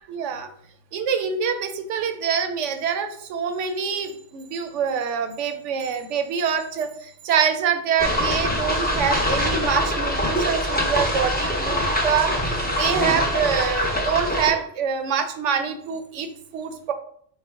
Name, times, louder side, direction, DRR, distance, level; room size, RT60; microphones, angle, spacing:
voice 1, 0.1-0.5 0.9-16.9, right 7 dB, 75° right, 7 dB, 0.9 m, -25 dB
sound 1, 8.0-14.5, equal, 15° left, 0.4 m, -23 dB
5.5 x 2.1 x 3.5 m, 0.64 s
omnidirectional pair, 1.3 m